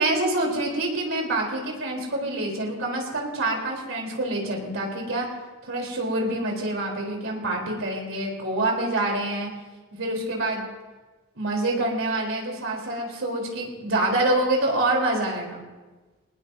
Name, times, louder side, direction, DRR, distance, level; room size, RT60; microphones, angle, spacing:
voice 1, 0.0-5.3 5.7-9.5 9.9-10.6 11.4-15.6, right 2 dB, 65° right, 0 dB, 3.8 m, -26 dB
22.0 x 19.0 x 2.8 m, 1.2 s
head